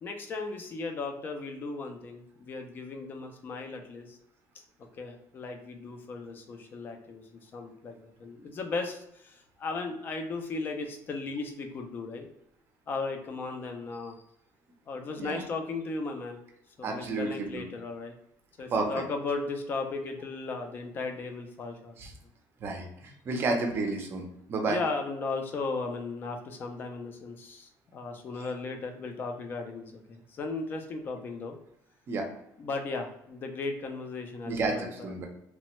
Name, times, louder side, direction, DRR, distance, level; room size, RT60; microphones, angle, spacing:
voice 1, 0.0-4.2 5.0-12.3 12.9-14.2 14.9-16.4 16.8-18.1 18.6-22.0 24.7-31.6 32.6-35.2, left 3 dB, 30° left, 5 dB, 0.4 m, -36 dB
voice 2, 16.8-17.6 18.7-18.9 22.0-22.1 22.6-24.8 32.1-32.3 34.4-35.3, right 3 dB, 35° right, 2 dB, 0.5 m, -31 dB
3.1 x 2.1 x 2.9 m, 0.80 s
cardioid pair, 175°, 7 cm